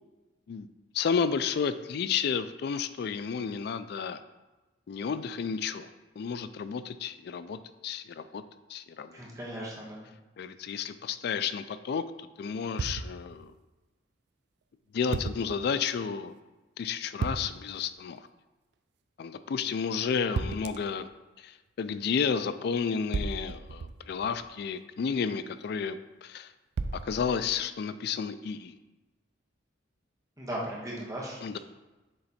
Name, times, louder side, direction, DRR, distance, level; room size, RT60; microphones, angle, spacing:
voice 1, 0.9-4.2 4.9-5.9 6.2-8.4 8.7-9.2 10.4-13.5 14.9-16.3 16.8-18.3 19.2-21.1 21.4-26.5 27.0-28.7 31.4-31.6, left 6 dB, 55° left, 12 dB, 0.3 m, -32 dB
voice 2, 9.1-10.1 30.4-31.6, right 1 dB, 20° right, -4 dB, 1.3 m, -37 dB
sound 1, 12.8-13.5 15.1-15.7 17.2-17.8 20.4-21.0 23.1-24.5 26.8-27.6, right 4 dB, 60° right, 0.3 m, -35 dB
6.9 x 3.3 x 4.1 m, 1.1 s
head